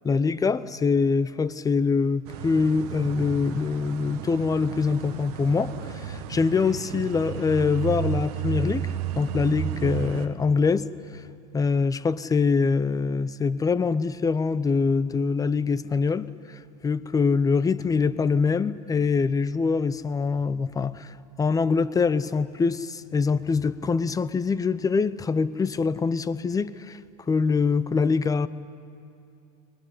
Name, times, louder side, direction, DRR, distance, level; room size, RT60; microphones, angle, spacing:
voice 1, 0.0-8.9 9.2-10.9 11.5-27.0 27.3-28.5, left 5 dB, 15° left, 0.7 m, -24 dB
sound 1, 2.2-10.3, right 9 dB, 65° right, 1.4 m, -33 dB
21.0 x 21.0 x 10.0 m
hypercardioid pair, 90°, 21 cm